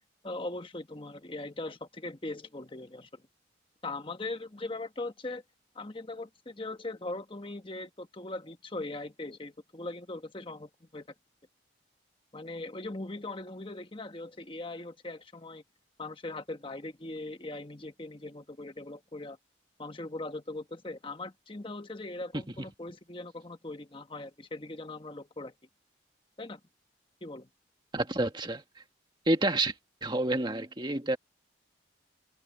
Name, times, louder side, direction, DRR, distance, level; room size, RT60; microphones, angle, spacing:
voice 1, 0.0-3.2 3.8-5.4 5.7-11.1 12.3-15.6 16.0-19.4 19.8-25.5 26.4-26.6 27.2-27.5, left 2 dB, 25° left, 1.1 m, -40 dB
voice 2, 27.9-28.6 29.3-29.7 30.0-31.2, right 2 dB, 25° right, 1.7 m, -28 dB
head